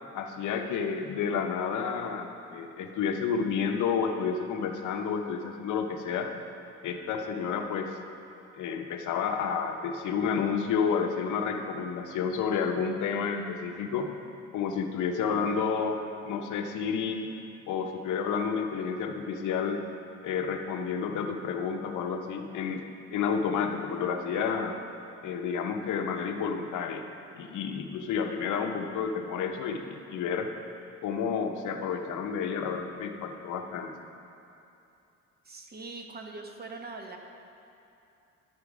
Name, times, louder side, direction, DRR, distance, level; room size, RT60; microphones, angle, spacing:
voice 1, 0.1-6.3 6.8-7.9 8.6-14.1 14.5-17.3 17.7-19.8 20.2-22.9 23.1-24.8 25.2-27.1 27.4-30.5 31.0-33.9, left 6 dB, 80° left, 4 dB, 0.8 m, -30 dB
voice 2, 35.4-37.2, right 3 dB, 30° right, 3 dB, 1.0 m, -42 dB
12.0 x 4.5 x 4.9 m, 2.7 s
cardioid pair, 90°, 30 cm